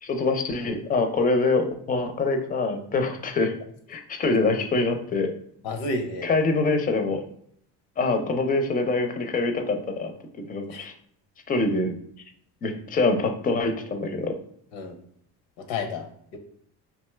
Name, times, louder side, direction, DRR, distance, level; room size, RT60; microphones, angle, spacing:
voice 1, 0.0-3.5 3.9-5.3 6.2-7.2 8.0-10.1 10.5-10.9 11.5-11.9 12.6-14.4, left 3 dB, 20° left, 6 dB, 0.4 m, -24 dB
voice 2, 5.6-6.3 10.7-10.8 14.7-14.9 15.7-16.1 16.3-16.4, left 3 dB, 80° left, 6 dB, 0.6 m, -30 dB
2.6 x 2.3 x 3.2 m, 0.67 s
supercardioid pair, 75°, 44 cm